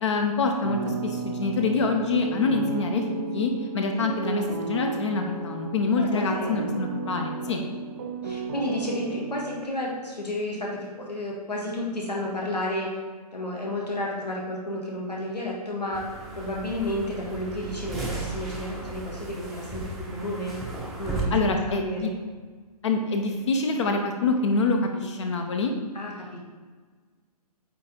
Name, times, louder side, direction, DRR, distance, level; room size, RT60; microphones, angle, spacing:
voice 1, 0.0-7.6 21.3-22.1 22.8-25.7, left 3 dB, 45° left, 3 dB, 0.7 m, -26 dB
sound 1, 0.6-9.6, right 4 dB, 40° right, 0.5 m, -33 dB
voice 2, 6.0-6.7 7.4-7.7 8.2-12.9 13.3-16.0 16.3-20.6 21.0-22.1 25.9-26.4, left 1 dB, 85° left, -3 dB, 1.6 m, -32 dB
sound 2, 15.9-21.2, right 3 dB, ahead, 0.7 m, -36 dB
8.7 x 3.3 x 3.8 m, 1.5 s
figure-of-eight pair, 130°, 20 cm